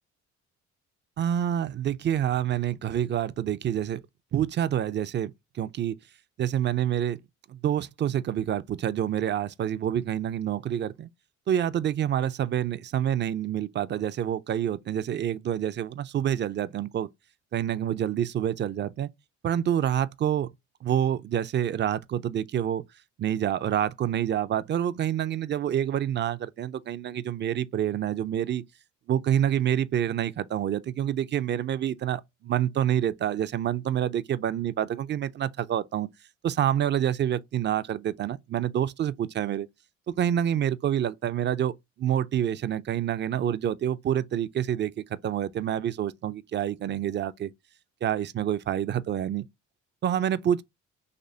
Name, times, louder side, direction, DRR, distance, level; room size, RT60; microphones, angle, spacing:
voice 1, 1.2-4.0 4.3-6.0 6.4-7.2 7.5-11.1 11.5-17.1 17.5-19.1 19.4-20.5 20.8-22.8 23.2-28.6 29.1-36.1 36.4-39.7 40.1-41.7 42.0-47.5 48.0-49.5 50.0-50.6, right 10 dB, 35° right, 0.4 m, -27 dB
4.2 x 2.9 x 2.7 m
supercardioid pair, 65°, 34 cm